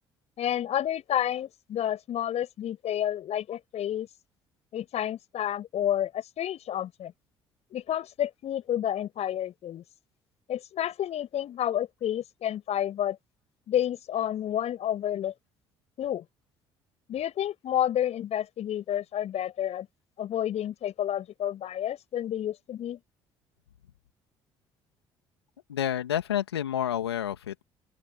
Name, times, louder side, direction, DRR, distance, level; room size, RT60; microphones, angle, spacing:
voice 1, 0.4-4.1 4.7-7.1 7.7-9.8 10.5-13.2 13.7-15.3 16.0-16.2 17.1-19.9 20.2-23.0, left 11 dB, 55° left, 6.5 m, -30 dB
voice 2, 25.7-27.6, left 10 dB, 90° left, 2.7 m, -29 dB
open air
hypercardioid pair, 55°, 13 cm